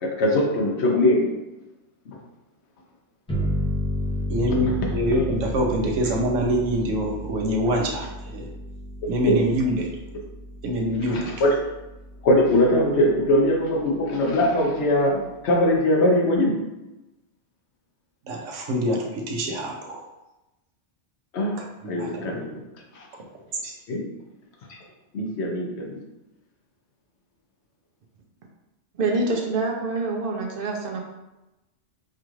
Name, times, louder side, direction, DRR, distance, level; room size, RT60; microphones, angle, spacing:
voice 1, 0.0-1.3 2.1-2.2 3.3-3.5 9.3-9.4 11.1-11.5 12.2-16.6 21.3-21.6 21.9-22.5 22.9-23.1 23.9-24.0 25.1-26.0, left 1 dB, 65° left, 0 dB, 1.0 m, -21 dB
sound 1, 3.3-12.6, left 1 dB, 5° left, 0.4 m, -32 dB
voice 2, 4.3-8.5 9.1-9.9 10.6-11.3 18.2-20.1 21.8-22.2 23.6-23.7, equal, 85° right, 0 dB, 1.1 m, -25 dB
voice 3, 29.0-31.0, right 3 dB, 55° right, 1 dB, 0.7 m, -26 dB
4.7 x 2.4 x 3.0 m, 0.99 s
omnidirectional pair, 1.2 m